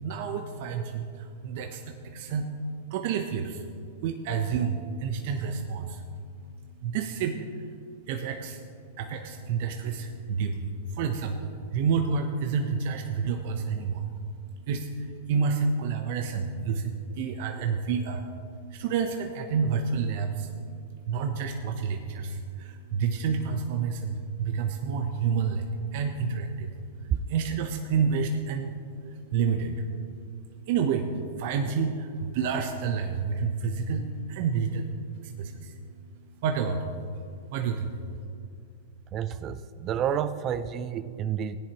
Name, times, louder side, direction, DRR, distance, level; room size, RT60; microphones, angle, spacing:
voice 1, 0.0-2.5 2.9-6.1 6.8-38.3, right 5 dB, 55° right, 4 dB, 0.9 m, -30 dB
voice 2, 39.1-41.6, right 9 dB, 35° right, 13 dB, 0.4 m, -30 dB
16.5 x 10.0 x 3.1 m, 2.4 s
hypercardioid pair, 115°, 0 cm